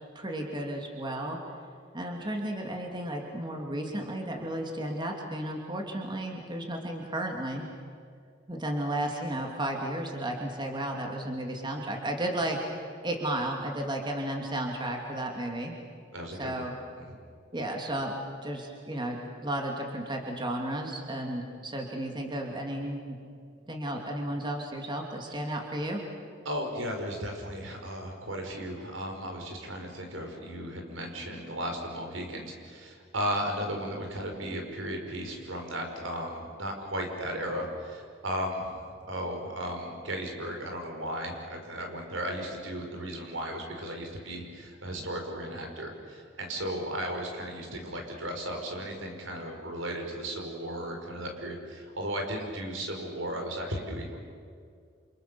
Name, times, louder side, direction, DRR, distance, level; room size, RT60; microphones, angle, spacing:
voice 1, 0.1-1.4 1.9-7.6 8.5-15.7 16.4-16.7 17.5-18.1 18.4-23.2 23.7-26.0, right 1 dB, 25° right, 1 dB, 2.8 m, -33 dB
voice 2, 16.1-16.6 17.0-17.1 26.4-54.2, equal, 85° right, 2 dB, 5.8 m, -35 dB
28.5 x 28.5 x 7.1 m, 2.2 s
head